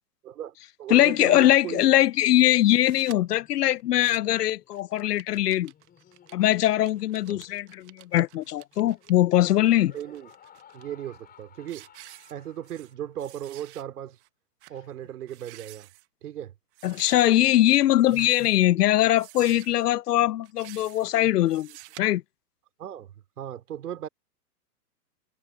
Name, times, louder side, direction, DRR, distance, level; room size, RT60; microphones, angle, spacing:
voice 1, 0.2-1.8 7.3-7.4 9.9-10.3 10.7-11.9 12.3-14.2 14.7-15.9 16.2-16.5 22.8-24.1, right 11 dB, 65° right, 2.9 m, -37 dB
voice 2, 0.9-5.7 6.3-9.9 16.8-21.7 22.0-22.2, left 13 dB, 70° left, 0.7 m, -21 dB
sound 1, 2.7-3.2 3.8-4.4 4.7-9.1 9.7-10.8 11.3-11.4 11.7-12.9 13.2-13.8 14.2-14.3 14.6-14.8 15.2-16.1 16.7-17.3 18.0-18.7 19.2-19.8 20.4-21.1 21.5-22.0, right 20 dB, 45° right, 1.3 m, -49 dB
Laughter, 2.9-13.3, left 9 dB, 20° left, 5.8 m, -57 dB
hypercardioid pair, 130°, 48 cm